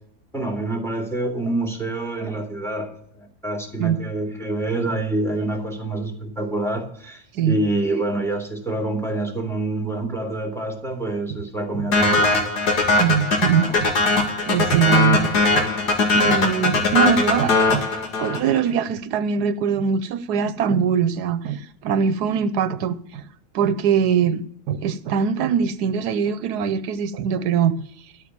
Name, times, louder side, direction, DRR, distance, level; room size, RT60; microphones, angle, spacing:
voice 1, 0.3-12.4 13.7-13.8, right 2 dB, ahead, 2.5 m, -27 dB
sound 1, 11.9-18.6, left 3 dB, 85° left, 2.6 m, -20 dB
voice 2, 13.0-13.9 14.5-15.6 16.1-17.8 18.2-23.3 23.5-27.7, right 7 dB, 90° right, 1.3 m, -22 dB
12.5 x 5.7 x 8.8 m
omnidirectional pair, 1.7 m